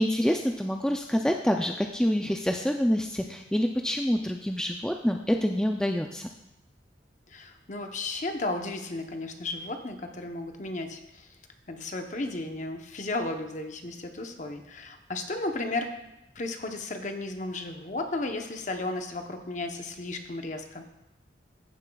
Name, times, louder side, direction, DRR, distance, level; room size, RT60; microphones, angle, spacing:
voice 1, 0.0-6.3, equal, 5° left, 3 dB, 0.3 m, -26 dB
voice 2, 7.3-11.3 11.7-16.0 16.4-20.9, left 2 dB, 40° left, 5 dB, 0.8 m, -34 dB
14.5 x 7.4 x 2.3 m, 0.93 s
head